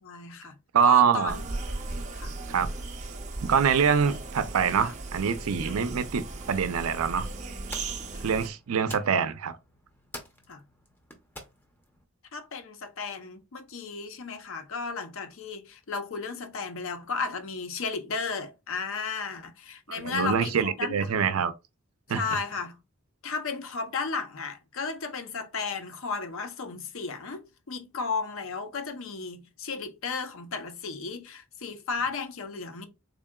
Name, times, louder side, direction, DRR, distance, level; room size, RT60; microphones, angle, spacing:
voice 1, 0.0-0.5 0.8-1.4 2.1-2.3 4.1-4.2 8.1-8.3 10.5-10.6 12.3-21.1 22.1-22.8 23.2-32.9, left 4 dB, 70° left, 0.6 m, -34 dB
voice 2, 0.7-1.3 2.5-2.7 3.4-7.3 8.2-9.6 19.9-21.5 22.1-22.2, right 7 dB, 85° right, 0.5 m, -25 dB
sound 1, 1.3-8.5, right 2 dB, 35° right, 0.5 m, -37 dB
sound 2, 6.8-12.1, left 1 dB, 10° left, 0.6 m, -48 dB
3.7 x 3.7 x 2.2 m
head